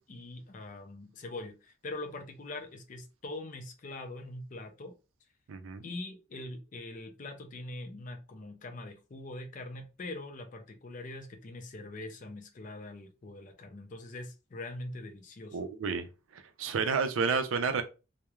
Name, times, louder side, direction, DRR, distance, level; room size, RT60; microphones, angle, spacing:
voice 1, 0.0-4.9 5.8-15.6, left 2 dB, 40° left, 0.4 m, -43 dB
voice 2, 5.5-5.8 15.5-16.1 16.3-17.8, right 5 dB, 85° right, 0.4 m, -30 dB
2.9 x 2.0 x 2.3 m
head